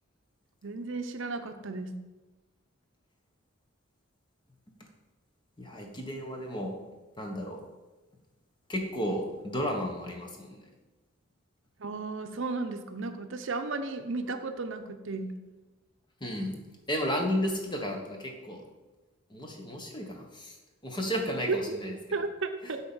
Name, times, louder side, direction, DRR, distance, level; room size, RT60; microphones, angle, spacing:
voice 1, 0.6-1.9 11.8-15.3 21.5-21.8 22.1-22.8, right 3 dB, 60° right, 7 dB, 0.7 m, -34 dB
voice 2, 5.6-6.7 7.2-7.6 8.7-10.7 16.2-16.6 16.9-18.6 19.3-20.6 20.8-22.2 22.6-22.7, equal, 20° left, 2 dB, 1.2 m, -33 dB
8.1 x 4.3 x 7.0 m, 1.2 s
head